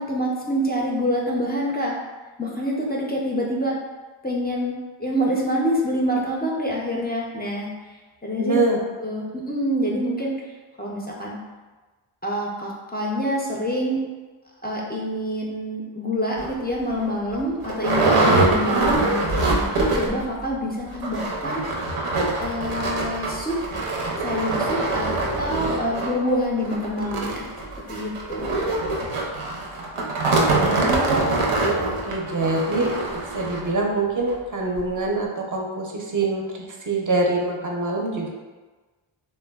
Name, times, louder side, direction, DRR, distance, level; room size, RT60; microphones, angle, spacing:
voice 1, 0.0-2.0 2.4-3.8 4.2-4.7 5.0-7.7 8.2-8.6 9.0-10.5 10.8-11.4 12.2-14.0 14.6-19.0 19.4-21.6 22.4-23.6 24.2-25.1 25.4-27.5 27.9-28.8, equal, 20° left, -3 dB, 0.3 m, -26 dB
voice 2, 8.4-8.8 30.5-32.9 33.3-36.4 36.9-38.3, right 2 dB, 40° right, -1 dB, 0.5 m, -24 dB
sound 1, 16.4-16.5 17.0-17.1 17.3-20.3 20.5-20.6 20.9-33.7 34.3-34.4 34.8-34.9, right 2 dB, 90° right, 0.6 m, -24 dB
3.2 x 2.1 x 2.2 m, 1.3 s
wide cardioid pair, 90°, 50 cm